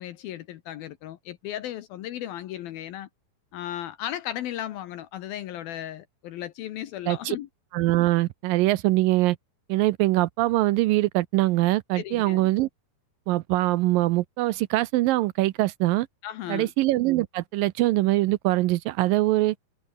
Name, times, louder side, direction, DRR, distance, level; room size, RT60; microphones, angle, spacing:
voice 1, 0.0-3.1 3.5-7.5 12.0-12.5 16.2-16.7, left 12 dB, 70° left, 2.8 m, -35 dB
voice 2, 7.1-7.4 7.7-9.4 9.7-12.7 13.3-16.1 16.5-19.6, right 17 dB, 80° right, 2.1 m, -23 dB
omnidirectional pair, 4.6 m